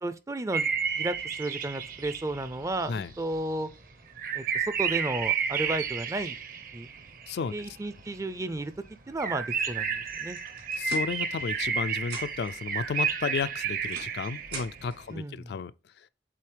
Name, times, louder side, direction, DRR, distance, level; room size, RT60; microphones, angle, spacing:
voice 1, 0.0-0.7 1.0-3.7 4.3-6.4 6.7-6.9 7.5-8.7 9.1-10.4 15.1-15.5, right 2 dB, 15° right, 0.4 m, -33 dB
sound 1, 0.5-3.3 3.6-3.7 4.2-8.2 8.5-8.6 8.8-8.9 9.2-14.8, right 6 dB, 50° right, 0.7 m, -31 dB
sound 2, 10.4-11.7 12.0-12.6 13.4-15.0, right 3 dB, 75° right, 2.8 m, -43 dB
voice 2, 10.8-15.7, left 5 dB, 60° left, 0.3 m, -33 dB
7.6 x 3.9 x 3.3 m
head